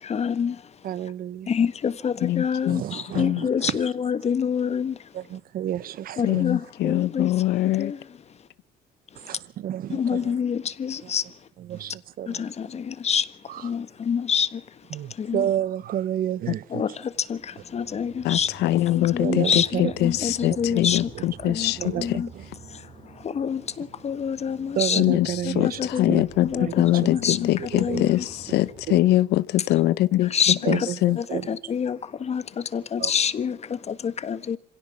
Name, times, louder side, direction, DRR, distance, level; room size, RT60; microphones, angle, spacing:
voice 1, 0.0-0.7 1.5-5.1 6.2-7.3 7.8-8.0 9.9-11.3 12.3-13.3 13.6-14.6 15.1-15.5 16.7-18.5 18.9-21.1 21.4-22.3 22.7-25.0 25.4-27.5 27.8-28.2 30.2-30.9 31.2-34.6, left 7 dB, 40° left, 1.5 m, -27 dB
voice 2, 0.8-1.5 2.7-3.9 5.1-6.5 6.9-7.1 9.2-10.4 11.0-11.1 11.7-12.4 13.5-13.7 14.9-16.8 19.2-20.8 21.1-22.4 24.8-25.8 26.1-26.2 26.6-26.7 27.0-27.1 27.7-28.0 28.9-29.0 30.6-31.5 33.0-33.1, right 11 dB, 60° right, 0.9 m, -31 dB
voice 3, 2.2-2.8 3.1-3.4 6.2-7.9 18.2-22.2 25.0-31.2, left 15 dB, 80° left, 0.8 m, -23 dB
sound 1, 17.1-29.0, right 5 dB, 40° right, 2.9 m, -47 dB
26.0 x 17.0 x 7.2 m
cardioid pair, 110°, 17 cm